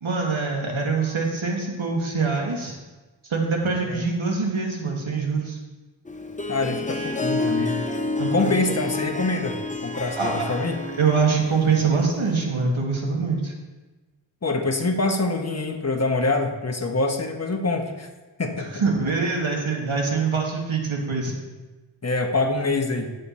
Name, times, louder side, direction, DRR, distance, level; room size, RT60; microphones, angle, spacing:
voice 1, 0.0-2.7 3.2-5.6 8.1-8.5 10.2-10.6 10.9-13.5 18.7-21.3, right 4 dB, 90° right, 0 dB, 1.7 m, -24 dB
Harp, 6.1-12.6, left 3 dB, 15° left, 0.7 m, -30 dB
voice 2, 6.5-7.9 8.3-10.8 14.4-18.1 18.4-18.7 22.0-23.2, left 2 dB, 35° left, 4 dB, 1.1 m, -25 dB
9.0 x 6.6 x 4.3 m, 1.2 s
wide cardioid pair, 55°, 47 cm